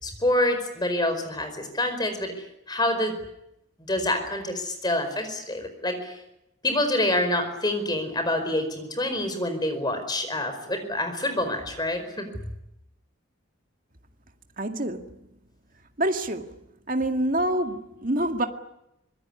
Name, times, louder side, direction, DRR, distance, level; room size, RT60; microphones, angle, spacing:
voice 1, 0.0-2.3 2.7-3.2 3.9-6.2 6.6-12.3, left 1 dB, 20° left, 8 dB, 4.8 m, -27 dB
voice 2, 14.6-15.2 16.0-16.6 16.9-18.5, right 1 dB, 40° right, 5 dB, 2.1 m, -26 dB
25.0 x 21.5 x 9.9 m, 0.85 s
head